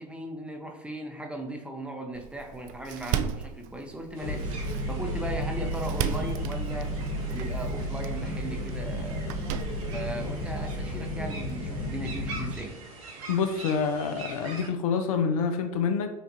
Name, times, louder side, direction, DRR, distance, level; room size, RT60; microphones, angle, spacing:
voice 1, 0.0-4.5 4.9-7.0 7.3-9.4 9.9-12.8, right 1 dB, 5° right, 3 dB, 0.6 m, -37 dB
Door, 2.1-11.1, right 9 dB, 45° right, 0.4 m, -37 dB
sound 1, 4.1-14.7, right 3 dB, 65° right, 1.1 m, -44 dB
sound 2, 4.2-12.5, equal, 45° left, 1.0 m, -32 dB
voice 2, 13.3-16.1, left 6 dB, 70° left, 6 dB, 0.6 m, -27 dB
5.9 x 2.4 x 2.7 m, 1.0 s
hypercardioid pair, 80°, 19 cm